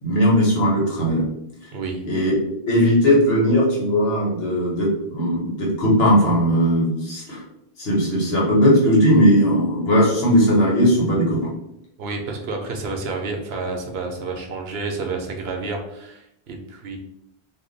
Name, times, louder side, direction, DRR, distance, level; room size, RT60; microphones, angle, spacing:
voice 1, 0.0-1.2 2.0-2.4 2.7-7.4 7.8-11.5, equal, 85° left, -4 dB, 1.3 m, -18 dB
voice 2, 1.7-2.0 12.0-17.0, right 3 dB, 80° right, 3 dB, 0.9 m, -30 dB
2.7 x 2.2 x 3.8 m, 0.79 s
omnidirectional pair, 1.0 m